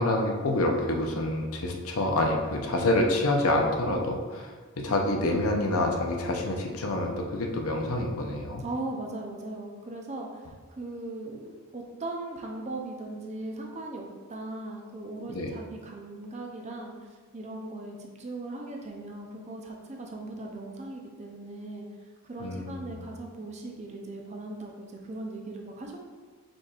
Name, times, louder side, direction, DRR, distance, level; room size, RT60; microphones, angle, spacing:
voice 1, 0.0-8.6 15.3-15.5 22.4-23.0, left 1 dB, 70° left, 2 dB, 0.6 m, -27 dB
voice 2, 8.6-21.9 22.2-26.0, right 2 dB, 30° right, 1 dB, 0.5 m, -39 dB
5.1 x 4.3 x 2.4 m, 1.4 s
head